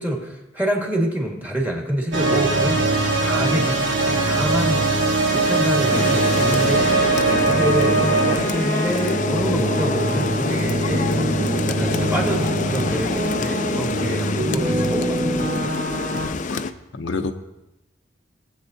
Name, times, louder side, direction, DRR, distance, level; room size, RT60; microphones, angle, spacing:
voice 1, 0.0-4.9 5.3-11.2 11.7-15.7, right 1 dB, 10° right, 0 dB, 1.6 m, -27 dB
sound 1, 2.1-16.3, right 2 dB, 75° right, 2.7 m, -22 dB
Rain, 5.9-16.7, left 4 dB, 40° left, 0.4 m, -26 dB
voice 2, 16.2-17.3, left 3 dB, 85° left, 6 dB, 0.7 m, -30 dB
18.0 x 8.0 x 2.7 m, 0.94 s
head